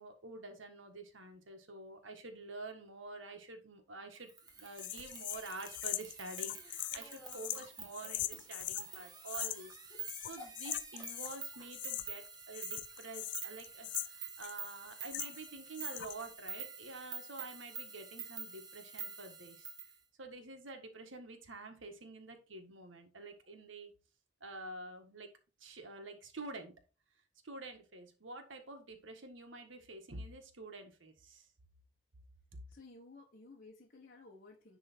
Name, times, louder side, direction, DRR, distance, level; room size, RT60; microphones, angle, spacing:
voice 1, 0.0-19.7 20.2-23.9 24.4-25.3 25.6-26.7 27.4-31.5, right 2 dB, 90° right, 1.6 m, -48 dB
sound 1, 4.3-19.9, right 6 dB, 20° right, 1.4 m, -47 dB
sound 2, 4.8-8.9 9.3-9.8 10.0-11.4 11.7-12.3 12.5-15.5 15.7-16.3, left 15 dB, 65° left, 0.4 m, -41 dB
sound 3, 6.3-7.7 9.8-10.0 10.4-11.9, left 1 dB, 10° left, 4.2 m, -56 dB
voice 2, 32.7-34.8, left 3 dB, 45° left, 1.2 m, -56 dB
10.5 x 3.6 x 4.5 m
head